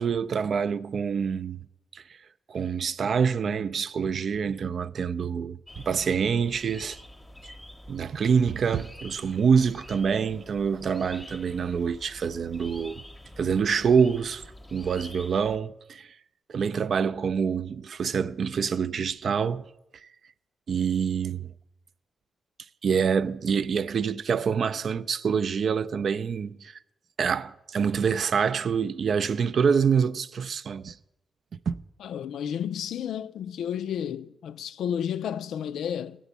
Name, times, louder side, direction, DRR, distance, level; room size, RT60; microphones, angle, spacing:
voice 1, 0.0-1.6 1.9-2.2 2.5-7.0 7.4-7.5 7.9-13.0 13.4-14.4 14.7-16.1 16.5-19.7 20.7-21.5 22.8-26.8 27.2-31.0 31.7-31.8, right 6 dB, 55° right, 0.3 m, -26 dB
sound 1, 5.7-15.6, left 1 dB, 10° left, 0.7 m, -47 dB
voice 2, 32.0-36.2, left 9 dB, 90° left, 0.3 m, -32 dB
7.2 x 7.0 x 8.1 m
cardioid pair, 115°, 0 cm